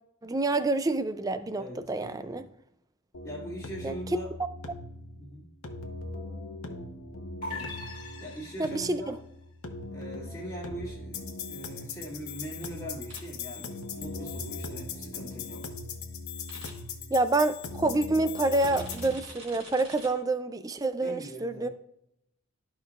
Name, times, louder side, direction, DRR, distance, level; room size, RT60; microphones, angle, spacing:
voice 1, 0.2-2.5 3.8-4.0 8.6-9.2 17.1-21.7, right 2 dB, 15° right, 11 dB, 0.3 m, -27 dB
voice 2, 1.5-2.5 3.2-4.3 5.1-5.4 7.4-7.7 8.2-9.1 9.9-15.6 21.0-21.7, right 1 dB, 15° left, -9 dB, 1.7 m, -42 dB
sound 1, 3.1-19.1, left 3 dB, 85° left, 0.9 m, -40 dB
sound 2, 7.4-9.0, left 3 dB, 40° left, 1.9 m, -40 dB
sound 3, 13.1-13.2 16.5-16.7 18.6-20.1, right 1 dB, 70° right, 2.9 m, -45 dB
13.0 x 5.1 x 2.4 m, 0.80 s
head